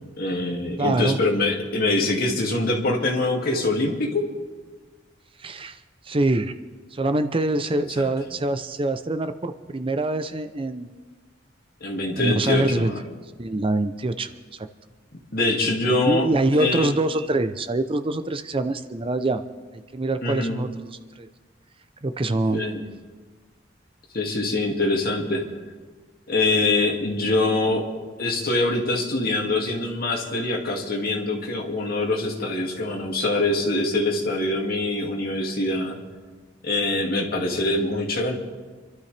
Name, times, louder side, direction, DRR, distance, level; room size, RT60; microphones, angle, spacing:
voice 1, 0.2-4.3 7.7-8.1 11.8-13.0 15.3-16.3 16.5-16.9 20.2-20.6 22.5-22.8 24.1-25.4 26.3-27.9 28.2-36.0 36.6-38.3, left 2 dB, 55° left, 0 dB, 2.3 m, -24 dB
voice 2, 0.8-1.2 5.4-5.8 6.1-6.5 6.9-10.9 12.1-12.9 13.4-14.7 16.1-19.4 19.7-20.7 21.2-21.3 22.0-22.6, right 2 dB, 30° right, 9 dB, 0.6 m, -24 dB
27.0 x 12.5 x 3.4 m, 1.4 s
head